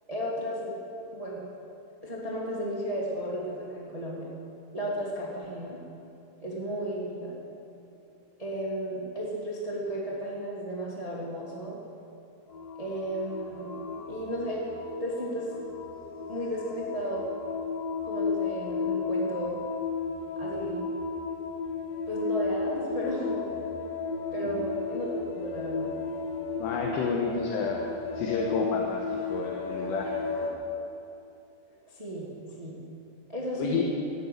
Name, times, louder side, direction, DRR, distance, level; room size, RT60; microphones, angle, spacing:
voice 1, 0.1-0.8 1.1-1.4 2.0-4.3 4.7-5.8 6.4-7.3 8.4-11.8 12.8-13.7 14.1-14.7 15.0-15.5 16.3-17.3 18.0-19.6 20.4-20.9 22.1-23.5 24.3-25.9 30.3-30.5 31.8-32.3 32.6-32.8 33.3-33.8, equal, 80° right, -4 dB, 0.3 m, -34 dB
sound 1, 12.5-30.5, left 4 dB, 60° left, 3.2 m, -34 dB
voice 2, 26.6-27.9 28.2-30.1 33.6-33.8, left 5 dB, 75° left, 0 dB, 3.2 m, -30 dB
14.0 x 10.0 x 9.3 m, 2.7 s
omnidirectional pair, 5.2 m